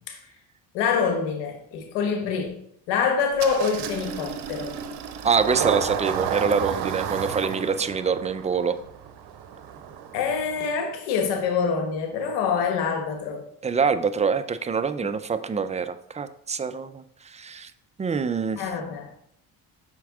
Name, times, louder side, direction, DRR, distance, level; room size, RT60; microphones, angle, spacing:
voice 1, 0.7-2.5 2.9-4.7 10.1-13.4 15.0-15.1 18.6-19.1, left 6 dB, 80° left, 1.2 m, -25 dB
Engine starting, 3.4-10.7, right 8 dB, 70° right, 0.8 m, -32 dB
voice 2, 5.2-8.8 13.6-17.0 17.3-17.7 18.0-18.6, right 5 dB, 15° right, 0.4 m, -25 dB
5.9 x 4.5 x 3.6 m
supercardioid pair, 70°, 42 cm